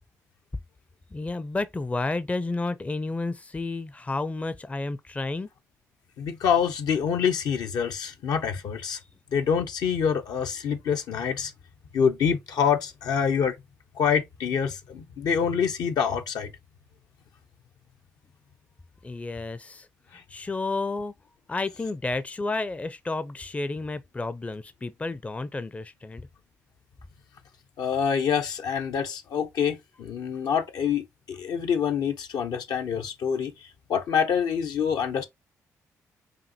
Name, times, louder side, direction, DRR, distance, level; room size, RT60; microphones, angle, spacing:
voice 1, 1.1-5.5 19.0-19.9 20.3-21.1 21.5-26.3, left 3 dB, 20° left, 0.5 m, -31 dB
voice 2, 6.2-9.0 9.3-11.5 11.9-13.6 14.0-16.5 27.8-33.5 33.9-35.2, left 7 dB, 70° left, 0.7 m, -26 dB
5.1 x 2.5 x 2.8 m
hypercardioid pair, 45°, 7 cm